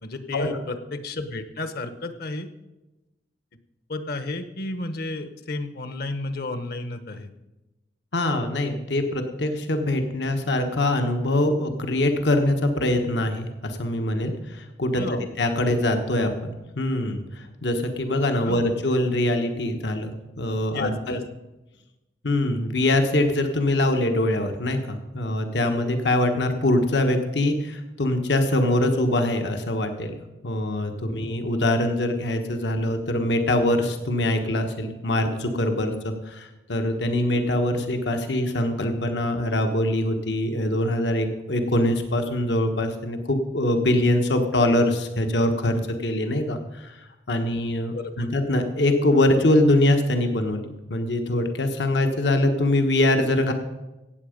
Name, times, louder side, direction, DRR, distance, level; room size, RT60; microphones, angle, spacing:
voice 1, 0.0-2.5 3.9-7.3 14.9-15.3 18.4-18.6 20.7-21.2 47.9-48.1, left 2 dB, 60° left, 10 dB, 1.1 m, -32 dB
voice 2, 8.1-15.0 15.4-20.1 20.4-21.2 22.2-30.2 30.4-47.0 47.3-53.5, left 1 dB, 80° left, 6 dB, 1.3 m, -23 dB
16.5 x 8.1 x 5.2 m, 1.0 s
head